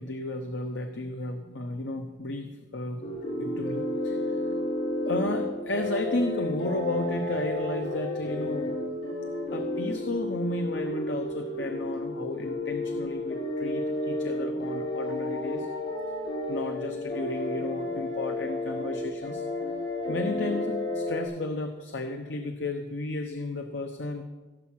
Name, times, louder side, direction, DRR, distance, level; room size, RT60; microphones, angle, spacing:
voice 1, 0.0-3.0 3.4-4.4 5.0-8.7 9.5-15.7 16.5-19.4 20.1-24.2, left 2 dB, 90° left, 6 dB, 0.8 m, -33 dB
sound 1, 3.0-21.3, left 1 dB, 70° left, 5.1 m, -31 dB
16.0 x 7.2 x 5.8 m, 1.2 s
head